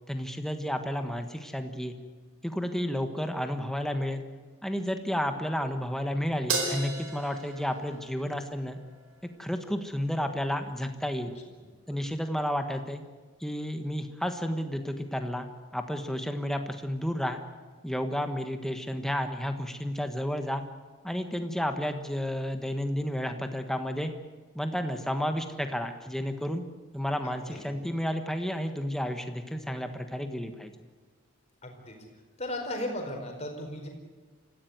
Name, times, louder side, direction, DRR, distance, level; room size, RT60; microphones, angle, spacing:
voice 1, 0.1-1.9 2.4-4.2 4.6-8.8 9.4-11.3 11.9-13.0 13.4-17.4 17.8-20.6 21.0-24.1 24.5-26.6 26.9-30.7, equal, ahead, 6 dB, 1.4 m, -31 dB
Crash cymbal, 6.5-9.0, right 3 dB, 85° right, 4.5 m, -34 dB
voice 2, 31.6-31.9 32.4-33.9, left 1 dB, 30° left, 2 dB, 4.4 m, -35 dB
25.5 x 15.0 x 9.5 m, 1.4 s
head